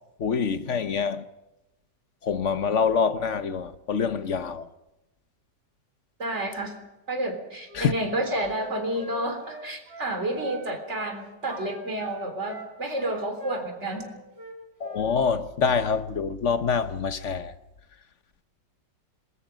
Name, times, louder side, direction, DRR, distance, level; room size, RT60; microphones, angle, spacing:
voice 1, 0.2-1.3 2.2-4.7 7.7-7.9 14.8-17.5, left 6 dB, 50° left, 1.1 m, -25 dB
voice 2, 6.2-6.7 7.1-14.1, right 1 dB, 40° right, 4.0 m, -30 dB
Wind instrument woodwind instrument, 7.6-10.6 10.9-11.2 11.5-14.1 14.3-15.1, right 2 dB, 80° right, 4.9 m, -42 dB
27.0 x 21.0 x 5.2 m
omnidirectional pair, 1.9 m